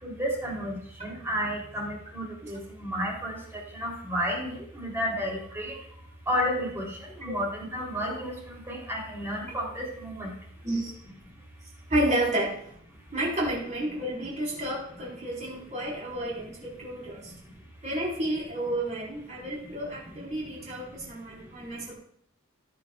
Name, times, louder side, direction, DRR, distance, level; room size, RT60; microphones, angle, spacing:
voice 1, 0.0-5.7 6.3-10.3, equal, 10° right, -3 dB, 3.2 m, -32 dB
voice 2, 11.9-12.5 13.1-17.3 17.8-22.0, right 1 dB, 35° right, -5 dB, 4.1 m, -31 dB
15.0 x 9.6 x 2.4 m, 0.65 s
head